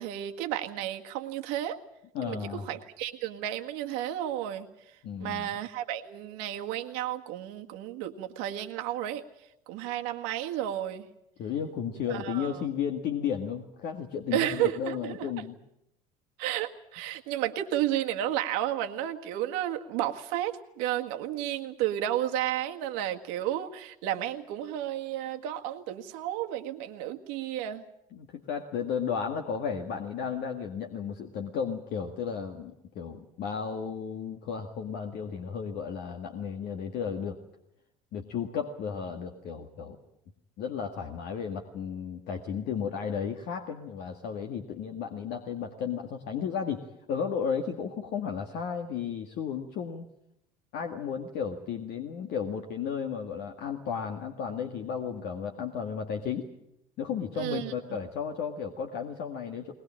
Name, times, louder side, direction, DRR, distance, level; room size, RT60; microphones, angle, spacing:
voice 1, 0.0-1.8 2.2-4.7 5.2-9.2 9.7-11.0 12.1-12.6 14.3-15.3 16.4-27.8 57.4-58.0, right 12 dB, 70° right, 5 dB, 1.7 m, -32 dB
voice 2, 2.1-2.7 5.0-5.5 11.4-15.6 28.1-37.4 38.1-40.0 40.6-50.1 50.7-56.5 57.0-59.7, left 7 dB, 60° left, 4 dB, 1.9 m, -34 dB
21.0 x 21.0 x 8.8 m, 0.79 s
hypercardioid pair, 65°, 20 cm